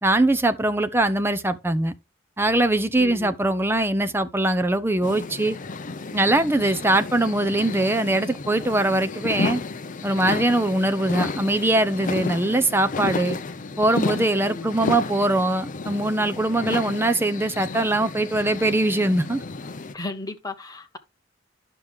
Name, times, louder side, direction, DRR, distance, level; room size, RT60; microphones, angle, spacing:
voice 1, 0.0-1.9 2.4-5.6 6.1-9.6 10.0-13.4 13.8-19.4, right 1 dB, 10° right, 0.7 m, -22 dB
voice 2, 3.0-3.4 14.4-14.8 19.9-21.0, left 2 dB, 20° left, 1.1 m, -35 dB
sound 1, 5.0-19.9, left 3 dB, 40° left, 0.6 m, -32 dB
10.5 x 6.0 x 3.6 m
head